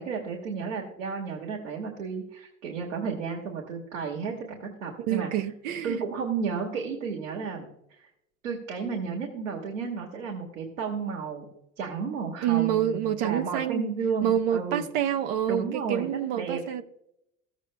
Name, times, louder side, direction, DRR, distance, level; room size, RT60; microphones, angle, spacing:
voice 1, 0.0-5.3 5.8-7.7 8.0-8.1 8.4-11.5 11.8-14.9 15.5-16.1 16.4-16.6, right 5 dB, 80° right, 1.9 m, -32 dB
voice 2, 5.1-6.0 12.4-13.9 14.2-16.8, right 10 dB, 65° right, 0.9 m, -27 dB
15.0 x 7.9 x 2.2 m
hypercardioid pair, 70°, 38 cm